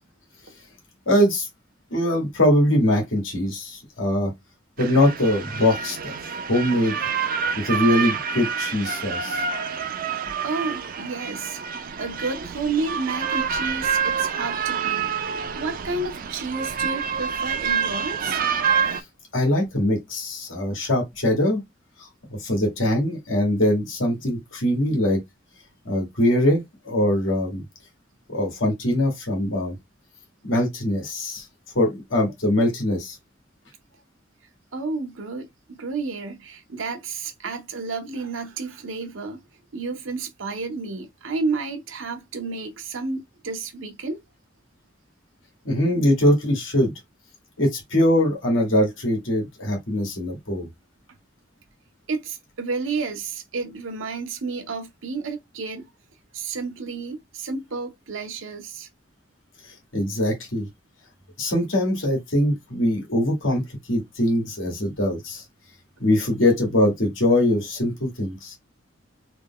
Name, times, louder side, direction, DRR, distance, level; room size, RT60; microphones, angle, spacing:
voice 1, 1.1-1.5 1.9-4.3 4.8-6.1 6.5-7.0 7.6-9.4 19.3-21.6 22.4-25.2 25.8-27.6 28.3-29.7 30.4-31.4 31.7-33.1 45.6-46.9 47.6-50.7 59.9-60.6 61.4-63.6 63.9-65.4 66.0-68.6, left 1 dB, 80° left, 1.6 m, -22 dB
sound 1, 4.8-19.0, right 6 dB, 45° right, 0.5 m, -27 dB
voice 2, 10.4-11.6 12.0-15.1 15.6-18.4 34.7-39.4 39.7-44.2 52.1-55.9 56.3-58.9, right 3 dB, 85° right, 0.8 m, -31 dB
3.4 x 2.3 x 3.6 m
head